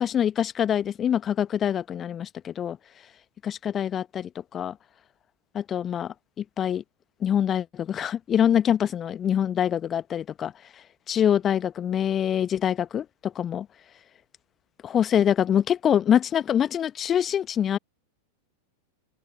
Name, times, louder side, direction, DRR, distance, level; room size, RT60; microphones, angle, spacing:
voice 1, 0.0-2.8 3.4-4.8 5.5-6.8 7.2-10.5 11.1-13.7 14.8-17.8, left 9 dB, 25° left, 1.1 m, -25 dB
open air
figure-of-eight pair, 90°, 0 cm